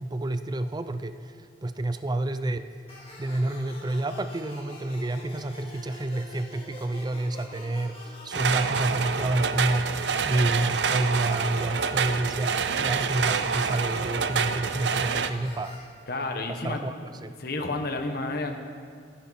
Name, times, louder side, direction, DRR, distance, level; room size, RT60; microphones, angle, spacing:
voice 1, 0.0-2.7 3.2-15.8 16.5-16.9 17.2-17.3, right 2 dB, 25° right, 11 dB, 0.5 m, -29 dB
sound 1, 2.9-15.8, left 2 dB, 30° left, 2.8 m, -45 dB
sound 2, 8.3-15.3, right 6 dB, 70° right, 0.6 m, -27 dB
voice 2, 16.1-16.8 17.4-18.5, left 2 dB, 60° left, 4 dB, 1.4 m, -30 dB
26.5 x 9.7 x 4.2 m, 2.1 s
head